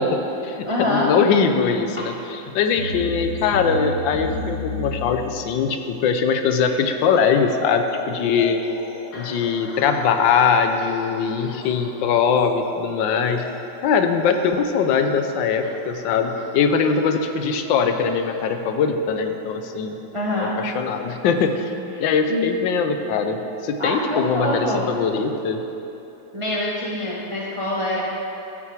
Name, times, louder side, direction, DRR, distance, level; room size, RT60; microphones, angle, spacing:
voice 1, 0.0-8.6 9.1-13.5 13.8-20.0 20.6-21.7 22.0-25.6, left 5 dB, 80° left, 7 dB, 1.3 m, -21 dB
voice 2, 0.6-1.1 2.0-2.1 20.1-20.5 22.3-22.4 23.8-24.8 26.3-28.0, left 1 dB, 30° right, -4 dB, 0.5 m, -25 dB
sound 1, 2.6-18.5 19.8-19.9 20.6-20.7 21.4-21.5, left 3 dB, 60° left, 1.5 m, -36 dB
14.0 x 6.0 x 4.7 m, 2.9 s
omnidirectional pair, 2.1 m